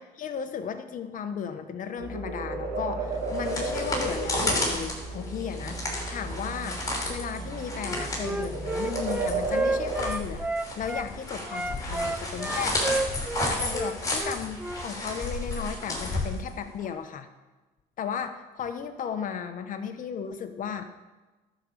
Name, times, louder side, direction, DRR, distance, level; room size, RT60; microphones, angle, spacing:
voice 1, 0.0-6.8 7.1-12.8 13.5-17.3 18.0-20.9, left 7 dB, 50° left, 8 dB, 1.0 m, -35 dB
sound 1, 2.0-10.1, right 3 dB, 75° right, 2.1 m, -33 dB
sound 2, 3.1-16.9, left 1 dB, 20° left, 3.3 m, -33 dB
Wind instrument woodwind instrument, 7.8-11.1 11.5-14.9, right 2 dB, 5° right, 0.3 m, -31 dB
12.0 x 5.1 x 6.7 m, 1.2 s
cardioid pair, 110°, 17 cm